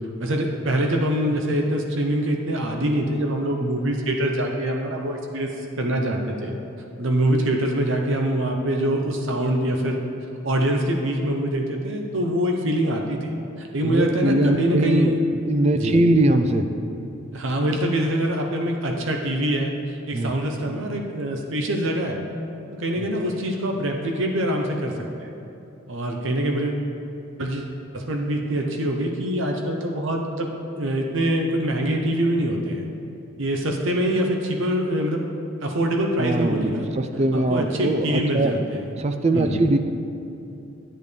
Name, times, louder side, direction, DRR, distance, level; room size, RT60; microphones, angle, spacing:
voice 1, 0.2-5.5 5.8-6.6 7.0-10.0 10.4-15.2 15.7-16.0 17.3-22.2 22.7-25.3 25.9-26.9 27.4-30.5 30.7-32.8 33.4-35.3 35.6-36.9 37.3-38.8 39.3-39.7, right 1 dB, 65° right, 2 dB, 0.8 m, -24 dB
voice 2, 13.8-15.1 15.5-16.6 20.1-20.4 36.2-38.5 39.0-39.8, right 1 dB, 30° right, 7 dB, 0.4 m, -21 dB
10.5 x 8.8 x 3.3 m, 2.8 s
head